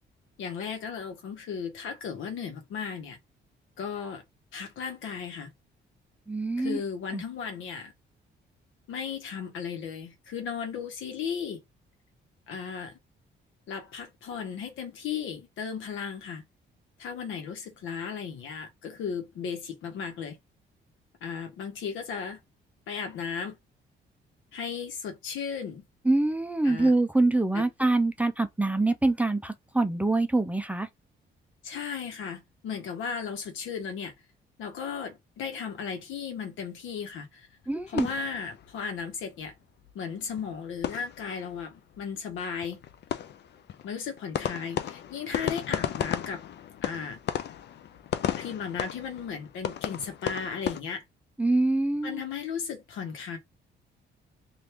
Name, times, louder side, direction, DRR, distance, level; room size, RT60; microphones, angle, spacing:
voice 1, 0.4-3.2 3.8-4.2 4.5-5.5 6.6-7.9 8.9-11.6 12.5-13.0 13.7-16.4 17.0-20.4 21.2-22.4 22.9-23.6 24.5-25.8 26.6-26.9 27.5-27.6 31.6-34.1 34.6-37.5 37.9-39.5 39.9-42.8 43.8-46.4 46.8-47.2 48.3-51.0 52.0-53.4, left 6 dB, 80° left, 1.0 m, -35 dB
voice 2, 6.3-6.8 7.1-7.2 26.0-30.9 37.7-38.1 51.4-52.2, right 2 dB, 5° right, 0.5 m, -25 dB
sound 1, 37.6-39.1 39.4-39.5 39.8-39.9 40.2-41.7 41.9-42.0 42.3-50.8, left 10 dB, 60° left, 0.5 m, -34 dB
2.8 x 2.5 x 3.4 m
cardioid pair, 90°, 20 cm